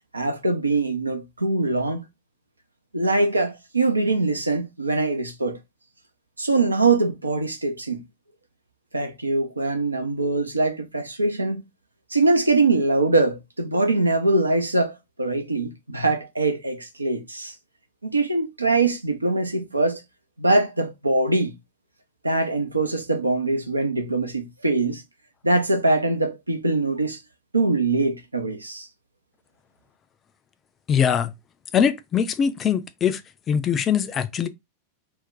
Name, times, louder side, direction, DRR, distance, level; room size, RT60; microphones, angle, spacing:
voice 1, 0.1-2.0 2.9-5.6 6.4-8.0 8.9-11.6 12.1-17.5 18.1-20.0 20.4-21.5 22.2-25.0 25.4-27.2 27.5-28.9, right 2 dB, 80° right, 0.5 m, -23 dB
voice 2, 30.9-31.3 31.7-33.2 33.5-34.5, left 8 dB, 25° left, 0.4 m, -22 dB
2.5 x 2.1 x 3.9 m
figure-of-eight pair, 90°, 0 cm